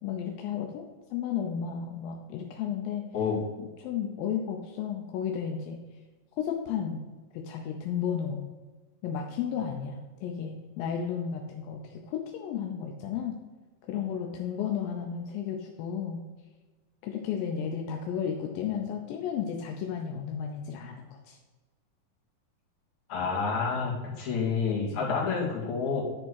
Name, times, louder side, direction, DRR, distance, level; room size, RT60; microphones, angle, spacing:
voice 1, 0.0-3.0 3.6-5.8 6.4-7.0 7.3-8.4 9.0-13.4 13.9-16.2 17.0-21.4 25.0-25.1, left 8 dB, 85° left, 2 dB, 2.5 m, -33 dB
voice 2, 23.1-26.0, left 5 dB, 60° left, -6 dB, 3.7 m, -29 dB
10.5 x 3.6 x 6.3 m, 1.3 s
omnidirectional pair, 4.0 m